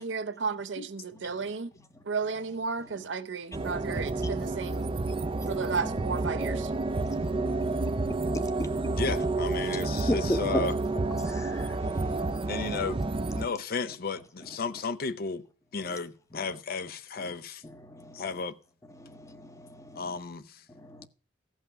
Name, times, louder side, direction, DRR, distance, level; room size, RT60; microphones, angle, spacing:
voice 1, 0.0-1.7 2.0-4.9 5.5-6.7, right 5 dB, 70° right, 0.7 m, -33 dB
sound 1, 3.5-13.5, right 3 dB, 30° right, 0.5 m, -30 dB
voice 2, 7.3-7.8 8.1-9.0 10.1-10.6 11.2-12.5 17.8-18.2 19.0-20.1 20.8-21.1, equal, 15° left, 0.8 m, -35 dB
voice 3, 9.0-10.7 12.5-13.0 13.4-15.4 15.7-17.6 18.1-18.5 20.0-20.6, left 4 dB, 55° left, 0.6 m, -33 dB
14.5 x 5.7 x 5.5 m
head